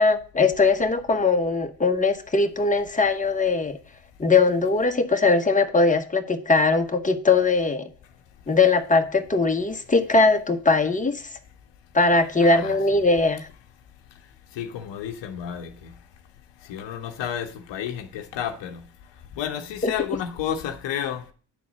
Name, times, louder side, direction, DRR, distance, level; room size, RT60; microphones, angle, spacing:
voice 1, 0.0-3.8 4.2-7.9 8.5-11.2 11.9-13.5 19.8-19.9, left 3 dB, 20° left, 1.1 m, -20 dB
voice 2, 12.4-12.7 14.6-15.7 16.7-18.8 19.4-21.2, left 9 dB, 85° left, 1.0 m, -31 dB
9.0 x 4.1 x 6.1 m
supercardioid pair, 45°, 42 cm